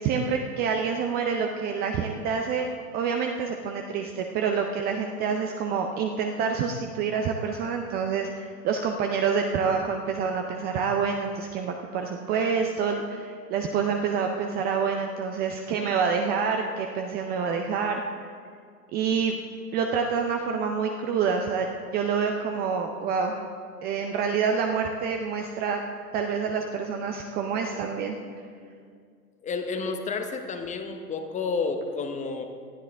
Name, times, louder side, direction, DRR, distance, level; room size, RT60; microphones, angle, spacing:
voice 1, 0.0-18.0 18.9-19.4 19.7-21.7 21.9-23.4 23.8-25.8 26.1-28.2, right 6 dB, 20° right, 3 dB, 0.6 m, -27 dB
voice 2, 29.4-32.4, left 4 dB, 15° left, 6 dB, 0.9 m, -30 dB
18.5 x 12.5 x 3.5 m, 2.2 s
hypercardioid pair, 115°, 48 cm